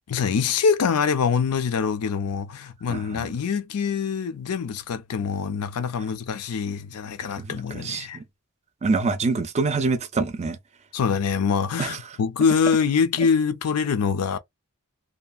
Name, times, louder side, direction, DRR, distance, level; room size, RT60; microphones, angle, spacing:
voice 1, 0.1-8.2 10.9-14.4, left 6 dB, 80° left, 0.5 m, -24 dB
voice 2, 2.9-3.3 7.4-8.2 8.8-10.6 11.8-12.0, right 3 dB, 30° right, 0.4 m, -26 dB
2.7 x 2.3 x 2.3 m
head